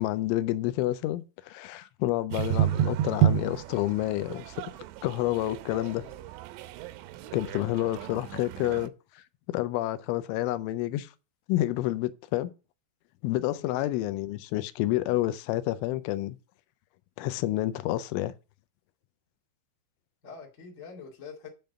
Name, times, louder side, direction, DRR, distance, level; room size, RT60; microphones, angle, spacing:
voice 1, 0.0-4.6 5.0-6.1 7.3-9.2 9.5-11.1 11.5-12.5 13.2-16.4 17.2-18.3, left 15 dB, 85° left, 3.0 m, -29 dB
sound 1, 2.3-8.9, right 11 dB, 85° right, 2.8 m, -30 dB
voice 2, 5.9-6.3 13.6-14.2 20.2-21.5, left 5 dB, 50° left, 0.8 m, -46 dB
8.9 x 3.6 x 6.6 m
omnidirectional pair, 5.5 m